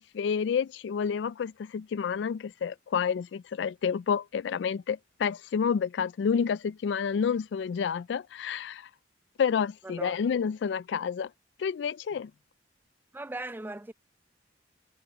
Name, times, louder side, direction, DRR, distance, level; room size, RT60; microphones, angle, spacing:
voice 1, 0.0-8.9 9.4-11.3 11.6-12.3, left 6 dB, 70° left, 0.3 m, -29 dB
voice 2, 13.1-13.9, right 2 dB, 10° right, 0.4 m, -38 dB
head